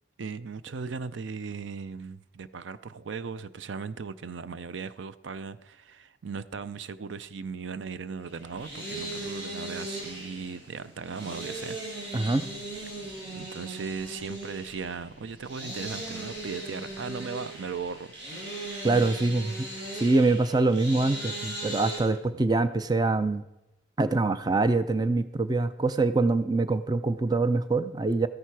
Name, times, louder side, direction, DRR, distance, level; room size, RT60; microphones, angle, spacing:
voice 1, 0.2-12.1 13.3-18.5 22.3-22.5, right 5 dB, 80° right, 0.5 m, -38 dB
sound 1, 8.3-22.0, right 1 dB, 65° right, 5.4 m, -38 dB
voice 2, 12.1-12.5 18.8-19.7 20.0-23.4 24.0-28.3, right 3 dB, 20° right, 0.4 m, -24 dB
13.5 x 10.0 x 4.7 m
head